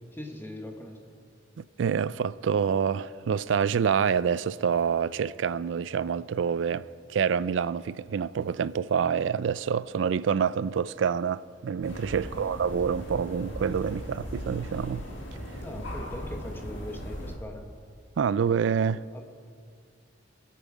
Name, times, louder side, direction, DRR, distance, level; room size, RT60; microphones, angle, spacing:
voice 1, 0.1-1.0 12.2-12.4 15.6-17.7 19.1-19.2, left 1 dB, 10° left, 1.2 m, -41 dB
voice 2, 1.6-15.0 18.2-19.0, right 7 dB, 70° right, 0.3 m, -27 dB
sound 1, 11.8-17.4, equal, 75° left, 2.0 m, -38 dB
23.0 x 8.6 x 5.0 m
head